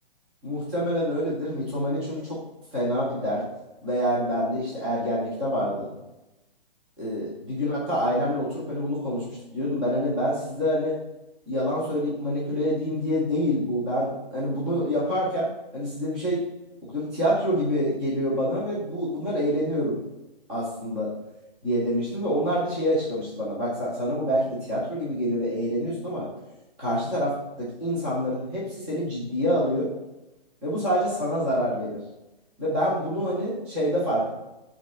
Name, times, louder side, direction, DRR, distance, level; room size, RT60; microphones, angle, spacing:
voice 1, 0.4-2.4 2.7-3.4 3.8-5.9 7.0-10.9 11.5-16.4 16.8-20.0 20.5-21.1 21.6-26.3 26.8-29.9 30.6-32.0 32.6-34.3, equal, 5° right, -7 dB, 0.6 m, -26 dB
7.6 x 4.2 x 6.3 m, 0.97 s
hypercardioid pair, 175°, 29 cm